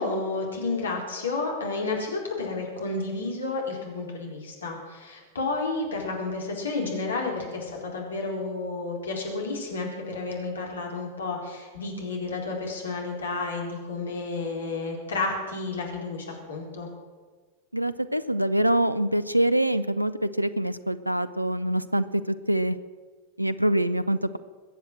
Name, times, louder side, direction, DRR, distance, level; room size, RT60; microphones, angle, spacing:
voice 1, 0.0-16.9, left 3 dB, 70° left, 0 dB, 4.3 m, -31 dB
voice 2, 17.7-22.8 23.4-24.4, right 1 dB, 90° right, 16 dB, 0.5 m, -25 dB
22.0 x 8.1 x 7.6 m, 1.4 s
figure-of-eight pair, 90°, 0 cm